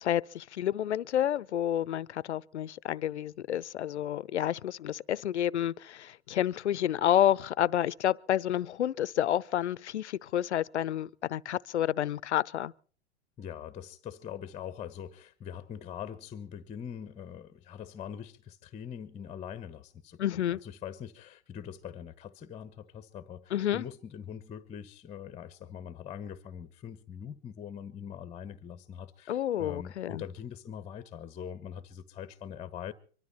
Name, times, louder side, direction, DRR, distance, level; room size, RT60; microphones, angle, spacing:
voice 1, 0.0-12.7 20.2-20.6 23.5-23.8 29.3-30.2, left 11 dB, 85° left, 0.8 m, -29 dB
voice 2, 13.4-32.9, left 8 dB, 20° left, 1.2 m, -43 dB
24.5 x 13.0 x 4.3 m
hypercardioid pair, 120°, 33 cm